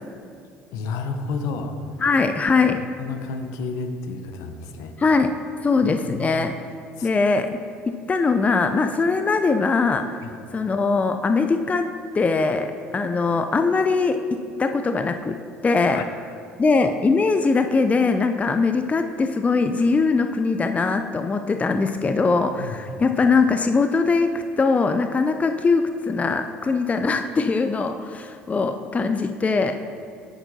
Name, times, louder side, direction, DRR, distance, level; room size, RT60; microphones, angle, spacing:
voice 1, 0.7-1.7 2.8-4.9 5.8-6.3 7.0-7.1 10.2-10.3 15.9-16.0 22.6-22.8, left 4 dB, 65° left, 6 dB, 0.8 m, -31 dB
voice 2, 2.0-2.8 5.0-5.3 5.6-6.5 7.0-7.6 8.1-10.0 10.5-11.9 12.1-15.4 15.6-16.0 16.6-24.3 24.6-29.8, left 4 dB, 25° left, 7 dB, 0.4 m, -21 dB
9.7 x 8.8 x 2.7 m, 2.3 s
hypercardioid pair, 65°, 6 cm